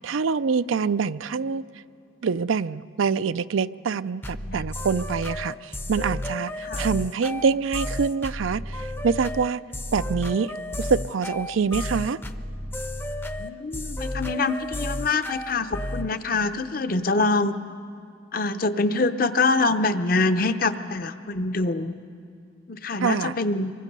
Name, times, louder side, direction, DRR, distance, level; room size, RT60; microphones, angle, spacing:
voice 1, 0.0-1.6 2.2-9.6 9.9-12.2 23.0-23.4, right 5 dB, 85° right, 16 dB, 0.5 m, -25 dB
sound 1, 4.2-16.1, left 1 dB, 10° left, 0.6 m, -32 dB
voice 2, 13.4-17.5 18.3-21.9 22.7-23.7, left 3 dB, 45° left, 11 dB, 0.7 m, -25 dB
25.0 x 23.5 x 5.4 m, 2.5 s
head